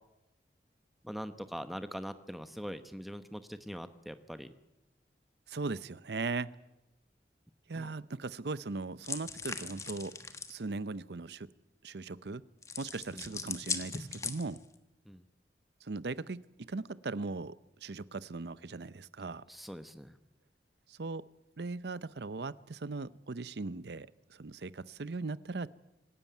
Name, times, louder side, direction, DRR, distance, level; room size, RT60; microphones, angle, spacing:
voice 1, 1.0-4.5 7.7-7.9 13.1-13.4 15.0-15.3 19.5-20.2, equal, ahead, 10 dB, 1.0 m, -43 dB
voice 2, 5.5-6.5 7.7-10.1 10.5-11.5 11.8-12.4 12.8-14.6 15.8-16.4 16.7-17.5 17.8-19.4 20.9-21.2 21.6-25.7, right 3 dB, 70° right, 17 dB, 0.7 m, -38 dB
sound 1, 9.0-10.6 12.6-14.7, left 4 dB, 15° left, 1.3 m, -39 dB
25.0 x 13.0 x 9.3 m, 0.95 s
head